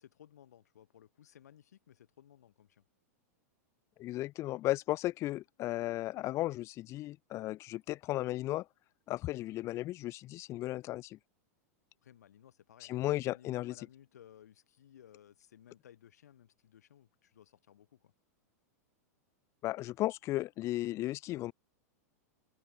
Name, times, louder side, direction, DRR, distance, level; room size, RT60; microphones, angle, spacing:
voice 1, 0.0-2.8 12.0-18.1, left 10 dB, 80° left, 5.1 m, -59 dB
voice 2, 4.0-8.7 9.1-11.2 12.8-13.7 19.6-21.5, left 16 dB, 35° left, 0.4 m, -35 dB
hypercardioid pair, 115°, 9 cm